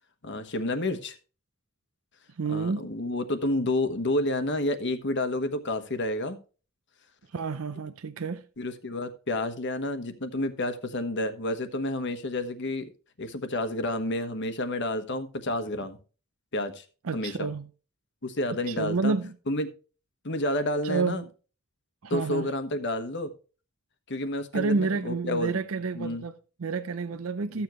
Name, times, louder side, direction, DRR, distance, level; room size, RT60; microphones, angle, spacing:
voice 1, 0.2-1.2 2.5-6.4 8.6-12.9 13.2-16.0 16.5-16.8 17.1-17.5 18.2-19.1 19.5-19.7 20.2-21.2 22.1-23.3 24.1-25.5 25.9-26.2, left 1 dB, 60° left, 1.2 m, -30 dB
voice 2, 2.4-2.9 7.3-8.4 17.0-17.7 18.5-19.3 20.8-21.3 22.0-22.5 24.5-27.6, right 4 dB, 85° right, 0.6 m, -29 dB
14.0 x 7.1 x 3.1 m
head